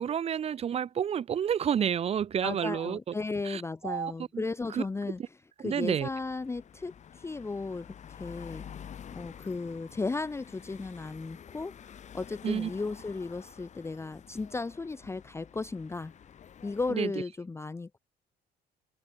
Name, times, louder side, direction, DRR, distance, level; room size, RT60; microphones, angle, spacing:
voice 1, 0.0-3.1 3.4-4.4 4.7-4.8 5.6-6.1 12.4-12.7 16.9-17.1, right 8 dB, 35° right, 0.6 m, -30 dB
voice 2, 2.4-5.2 5.6-8.7 9.1-16.1 16.6-18.0, left 3 dB, 15° left, 0.7 m, -35 dB
sound 1, 6.0-17.0, left 8 dB, 45° left, 1.9 m, -49 dB
open air
cardioid pair, 110°, 17 cm